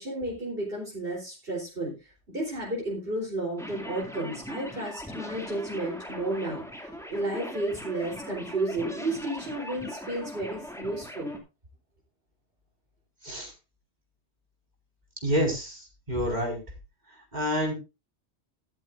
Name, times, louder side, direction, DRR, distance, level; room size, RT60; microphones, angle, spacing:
voice 1, 0.0-11.3, right 2 dB, 60° right, -4 dB, 4.1 m, -32 dB
sound 1, 3.6-11.4, equal, 5° left, 2.4 m, -40 dB
voice 2, 15.2-16.6 17.3-17.7, equal, 40° right, 0 dB, 5.2 m, -28 dB
13.5 x 13.0 x 2.6 m, 0.28 s
omnidirectional pair, 1.1 m